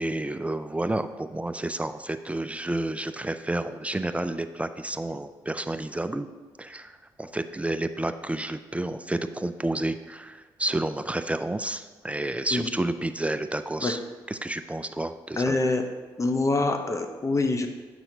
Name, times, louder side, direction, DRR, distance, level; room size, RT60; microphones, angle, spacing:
voice 1, 0.0-6.3 6.6-14.0 14.3-15.6, right 1 dB, 10° right, 10 dB, 0.4 m, -30 dB
voice 2, 15.4-15.8 16.2-17.7, left 3 dB, 30° left, 6 dB, 0.8 m, -25 dB
7.7 x 5.7 x 2.7 m, 1.3 s
hypercardioid pair, 45°, 11 cm